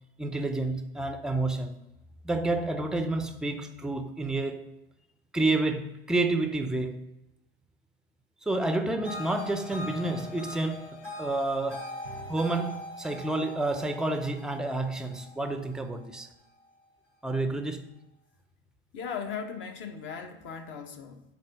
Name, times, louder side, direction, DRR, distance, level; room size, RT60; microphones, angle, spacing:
voice 1, 0.2-1.7 2.2-4.6 5.3-7.0 8.4-11.9 12.3-16.3 17.2-17.9, right 2 dB, ahead, 0.6 m, -29 dB
sound 1, 9.0-16.2, left 2 dB, 85° left, 3.0 m, -41 dB
voice 2, 18.9-21.2, left 6 dB, 40° left, 0.9 m, -38 dB
8.6 x 3.9 x 5.2 m
figure-of-eight pair, 75°, 29 cm